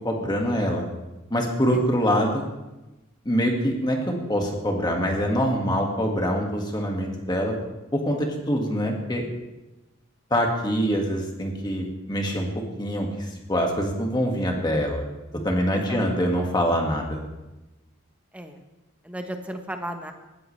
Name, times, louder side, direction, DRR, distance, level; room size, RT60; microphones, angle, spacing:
voice 1, 0.0-0.8 1.3-2.4 3.3-7.6 7.9-9.2 10.3-12.5 12.8-15.0 15.4-17.2, equal, 20° left, 1 dB, 1.9 m, -24 dB
voice 2, 19.0-20.1, right 1 dB, 5° right, 5 dB, 1.1 m, -34 dB
19.0 x 14.0 x 3.3 m, 1.0 s
head